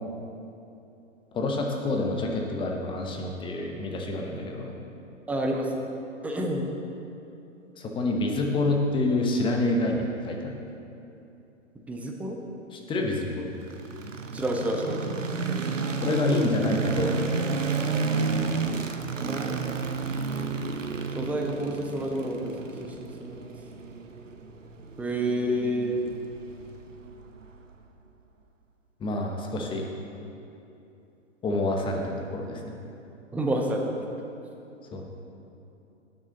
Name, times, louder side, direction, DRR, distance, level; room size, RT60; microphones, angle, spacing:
voice 1, 1.3-4.7 7.8-10.5 12.7-13.5 16.0-17.1 29.0-29.9 31.4-32.7 34.9-35.0, left 2 dB, 15° left, 2 dB, 1.0 m, -27 dB
voice 2, 5.3-5.9 6.2-6.7 11.9-12.4 14.3-15.3 19.3-19.9 21.1-23.5 25.0-26.0 33.3-34.2, right 1 dB, 5° right, 1 dB, 0.5 m, -29 dB
sound 1, 13.6-27.7, right 4 dB, 85° right, 0.8 m, -31 dB
18.0 x 6.6 x 4.0 m, 2.8 s
figure-of-eight pair, 115°, 37 cm